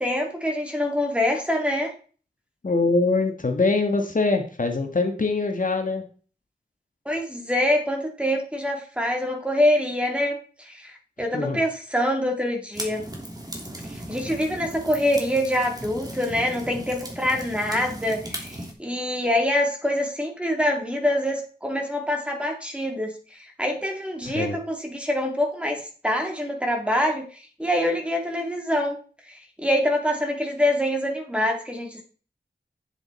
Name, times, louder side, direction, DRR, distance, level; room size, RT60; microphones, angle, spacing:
voice 1, 0.0-1.9 7.0-13.0 13.9-29.0 29.3-32.0, left 1 dB, 5° right, 2 dB, 3.2 m, -25 dB
voice 2, 2.6-6.0 11.3-11.6 24.2-24.5, left 3 dB, 50° left, 4 dB, 1.6 m, -23 dB
sound 1, 12.7-18.7, right 1 dB, 20° right, 3.1 m, -37 dB
9.6 x 7.6 x 4.3 m, 0.39 s
wide cardioid pair, 55°, 17 cm